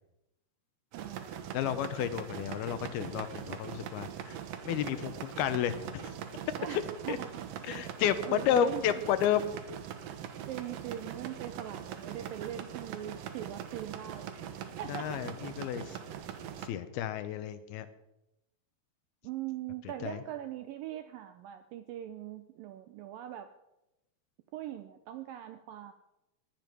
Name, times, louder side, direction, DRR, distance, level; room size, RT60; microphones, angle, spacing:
sound 1, 0.9-16.7, right 9 dB, 70° right, 2.4 m, -42 dB
voice 1, 0.9-1.6 6.6-7.8 8.2-8.8 10.5-14.5 14.8-15.3 16.7-16.8 19.2-23.5 24.5-25.9, right 12 dB, 85° right, 9 dB, 2.0 m, -41 dB
voice 2, 1.5-6.1 6.7-6.8 7.1-7.2 7.6-9.6 14.9-16.0 16.6-17.9 20.0-20.2, left 10 dB, 75° left, 11 dB, 2.6 m, -32 dB
17.0 x 11.0 x 6.1 m, 0.91 s
omnidirectional pair, 4.9 m